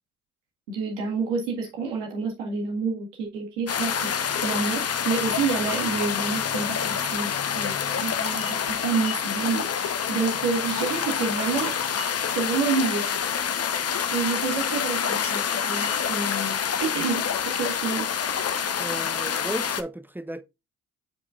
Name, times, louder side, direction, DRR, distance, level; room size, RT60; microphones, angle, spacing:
voice 1, 0.7-11.8 12.3-13.0 14.1-18.1, right 4 dB, 90° right, 1.8 m, -29 dB
sound 1, 3.7-19.8, left 7 dB, 40° left, 0.9 m, -27 dB
sound 2, 5.7-6.2 8.2-9.2 11.6-13.0 15.2-16.6, left 4 dB, 65° left, 3.5 m, -39 dB
voice 2, 18.8-20.4, right 1 dB, 5° right, 0.7 m, -34 dB
8.5 x 5.0 x 2.4 m
hypercardioid pair, 45°, 36 cm